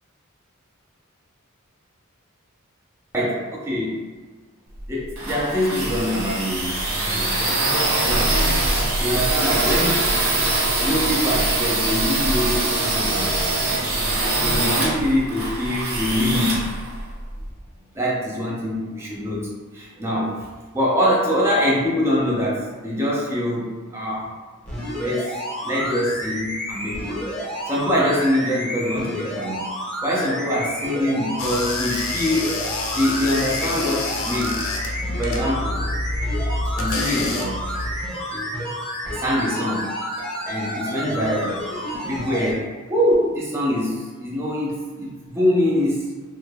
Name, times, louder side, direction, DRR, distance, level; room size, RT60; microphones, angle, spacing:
voice 1, 3.1-4.0 4.9-6.7 7.1-7.4 8.0-8.4 9.0-10.0 10.8-13.9 14.4-16.7 17.9-20.5 20.7-24.3 25.0-25.4 25.6-27.3 27.7-29.6 30.0-32.5 32.9-34.6 35.2-35.8 36.8-37.6 38.3-38.5 39.1-39.9 40.5-46.1, left 1 dB, 10° right, -6 dB, 0.4 m, -24 dB
sound 1, 4.8-17.5, right 2 dB, 75° right, 0.7 m, -23 dB
sound 2, 24.6-42.5 43.1-43.2, equal, 5° left, 0.8 m, -30 dB
sound 3, 31.4-38.1, left 2 dB, 70° left, 0.5 m, -28 dB
3.2 x 2.2 x 3.3 m, 1.4 s
head